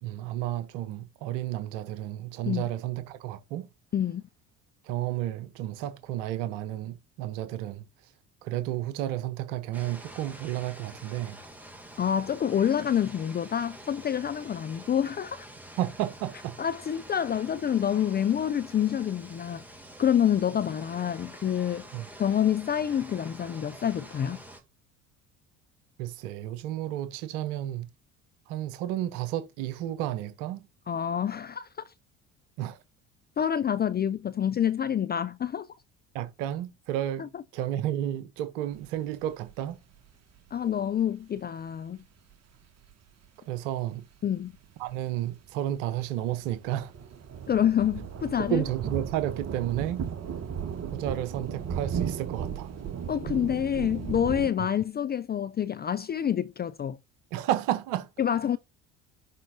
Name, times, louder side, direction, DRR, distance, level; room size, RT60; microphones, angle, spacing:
voice 1, 0.0-3.7 4.8-7.9 8.4-11.4 15.8-16.6 21.9-22.1 26.0-27.9 28.5-30.6 32.6-32.8 36.1-39.8 43.5-44.0 44.8-46.9 48.5-50.0 50.9-52.7 57.3-58.1, right 13 dB, 65° right, 1.3 m, -32 dB
voice 2, 3.9-4.2 12.0-15.4 16.6-19.6 20.0-21.9 22.2-24.4 30.9-31.9 33.4-35.7 37.2-37.3 40.5-42.0 44.2-44.5 47.5-48.6 53.1-57.0 58.2-58.6, left 9 dB, 25° left, 0.5 m, -27 dB
sound 1, 9.7-24.6, right 1 dB, 5° right, 2.9 m, -47 dB
sound 2, 38.8-39.5 40.0-40.1 40.5-40.6 42.9-43.0 44.7-44.9 45.2-54.5, right 7 dB, 40° right, 1.8 m, -35 dB
11.5 x 4.5 x 2.9 m
hypercardioid pair, 60°, 38 cm